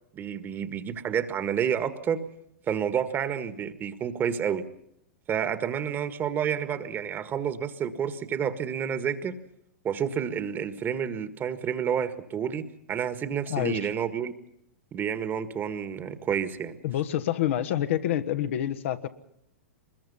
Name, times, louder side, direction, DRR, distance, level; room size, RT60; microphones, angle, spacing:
voice 1, 0.1-2.3 2.7-4.7 5.3-9.4 9.8-14.3 14.9-16.8, right 8 dB, 25° right, 12 dB, 1.7 m, -29 dB
voice 2, 13.5-13.9 16.8-19.1, left 11 dB, 60° left, 8 dB, 1.5 m, -27 dB
24.0 x 21.5 x 5.6 m, 0.75 s
hypercardioid pair, 110°, 8 cm